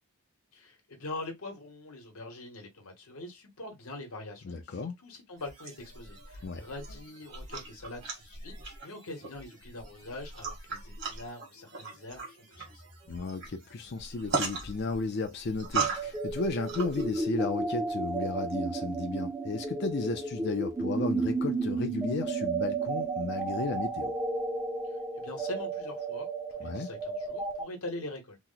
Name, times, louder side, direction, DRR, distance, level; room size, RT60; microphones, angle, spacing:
voice 1, 0.5-12.8 24.8-26.3 26.6-28.4, left 2 dB, 75° left, 1.0 m, -43 dB
voice 2, 4.4-5.0 6.4-6.6 13.1-24.1 26.6-26.9, left 3 dB, 50° left, 0.4 m, -34 dB
sound 1, 5.4-17.2, right 4 dB, 50° right, 1.3 m, -39 dB
sound 2, 15.8-27.6, right 3 dB, 10° right, 0.5 m, -33 dB
2.9 x 2.1 x 3.7 m
head